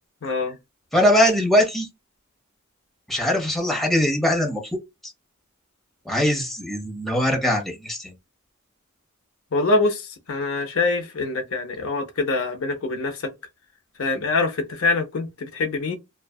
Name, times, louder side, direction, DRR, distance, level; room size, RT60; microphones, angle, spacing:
voice 1, 0.2-0.6 9.5-13.3 14.0-15.9, left 3 dB, 65° left, 0.6 m, -24 dB
voice 2, 0.9-1.9 3.1-4.6 6.1-8.0, equal, ahead, 0.6 m, -21 dB
2.6 x 2.3 x 2.2 m
head